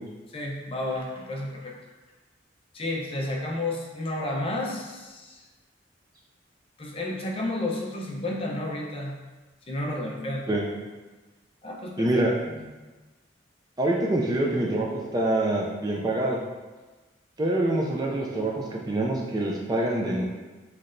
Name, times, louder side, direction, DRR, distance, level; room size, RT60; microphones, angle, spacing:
voice 1, 0.3-1.7 2.7-5.4 6.8-9.2 9.7-10.4 11.6-12.1 12.5-12.7, left 1 dB, 30° left, -1 dB, 0.6 m, -31 dB
voice 2, 12.0-12.3 13.8-14.9 15.1-16.4 17.4-20.2, right 1 dB, 20° right, -1 dB, 0.4 m, -25 dB
5.7 x 3.2 x 2.5 m, 1.2 s
head